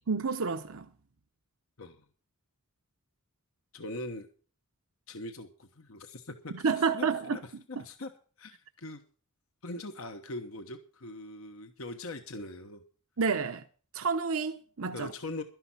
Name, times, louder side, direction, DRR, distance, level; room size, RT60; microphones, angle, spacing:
voice 1, 0.1-0.9 6.5-7.4 13.2-13.6 13.9-15.1, right 5 dB, 85° right, 0.8 m, -29 dB
voice 2, 3.7-4.3 5.1-7.4 7.7-8.1 8.4-9.0 9.6-12.8 14.9-15.4, left 2 dB, 80° left, 1.2 m, -41 dB
12.5 x 11.0 x 5.7 m
head